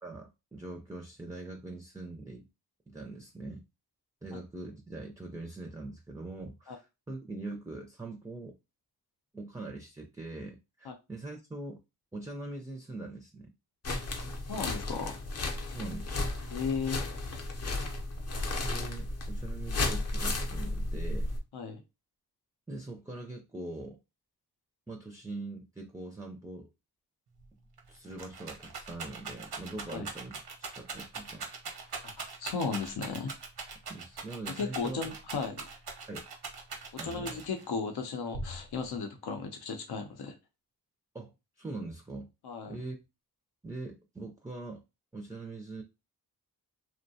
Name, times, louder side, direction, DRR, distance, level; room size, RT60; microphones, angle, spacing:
voice 1, 0.0-2.5 2.9-3.6 4.2-8.6 9.3-11.8 12.1-13.5 15.7-16.1 18.6-21.3 22.7-24.0 24.9-26.7 27.9-31.5 31.8-32.0 33.9-35.1 36.1-36.2 37.0-37.4 41.1-42.3 42.7-43.0 43.6-44.8 45.1-45.8, right 2 dB, 10° right, 2 dB, 0.4 m, -42 dB
sound 1, 13.8-21.4, left 2 dB, 40° left, 0.6 m, -34 dB
voice 2, 14.5-15.2 16.5-17.0 21.5-21.8 29.9-30.0 32.0-33.3 34.6-35.6 37.0-40.4 42.4-42.8, left 5 dB, 85° left, 5 dB, 0.6 m, -35 dB
Rattle, 27.4-27.5 27.8-37.7 38.3-39.0, right 4 dB, 80° right, 0.7 m, -41 dB
2.6 x 2.1 x 2.7 m, 0.26 s
cardioid pair, 65°, 38 cm